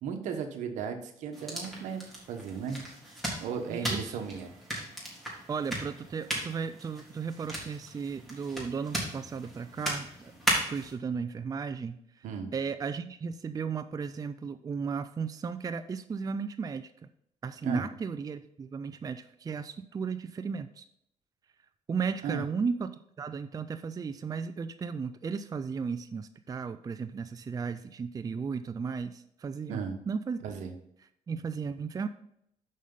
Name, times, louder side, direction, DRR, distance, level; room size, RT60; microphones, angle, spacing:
voice 1, 0.0-2.0 2.3-2.9 3.4-4.5 12.2-12.5 17.6-17.8 22.2-22.4 29.7-30.0 30.4-30.7, right 6 dB, 80° right, 6 dB, 1.1 m, -35 dB
sound 1, 1.3-10.9, right 1 dB, ahead, 3.5 m, -36 dB
voice 2, 3.7-4.2 5.5-10.3 10.7-12.0 12.5-16.9 17.4-20.8 21.9-30.4 31.3-32.1, right 5 dB, 30° right, 10 dB, 0.4 m, -35 dB
6.5 x 5.5 x 5.2 m, 0.74 s
cardioid pair, 80°, 12 cm